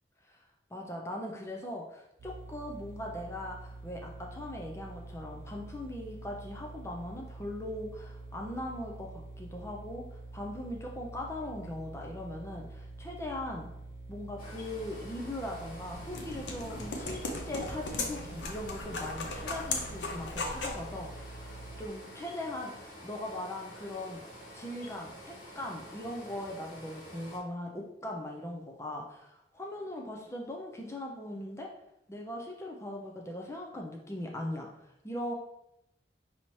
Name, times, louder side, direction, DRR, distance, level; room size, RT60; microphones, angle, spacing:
voice 1, 0.7-13.7 14.1-24.2 24.5-31.7 32.1-35.3, left 1 dB, 15° left, 0 dB, 0.4 m, -40 dB
sound 1, 2.2-21.9, right 2 dB, 50° right, 0.4 m, -46 dB
sound 2, 14.4-27.4, equal, 50° left, 1.1 m, -49 dB
sound 3, 15.6-20.9, left 3 dB, 90° left, 0.6 m, -37 dB
5.5 x 2.8 x 3.1 m, 0.83 s
head